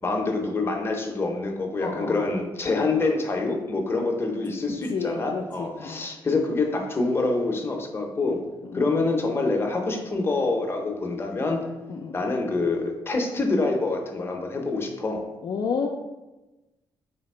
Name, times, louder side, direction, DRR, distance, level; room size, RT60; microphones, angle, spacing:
voice 1, 0.0-8.4 8.7-11.6 12.1-15.2, left 3 dB, 25° left, 2 dB, 0.7 m, -26 dB
voice 2, 1.8-2.3 4.9-6.0 8.6-8.9 11.9-12.2 15.4-15.9, left 5 dB, 55° left, 0 dB, 0.4 m, -30 dB
3.4 x 2.9 x 4.3 m, 1.1 s
cardioid pair, 100°, 9 cm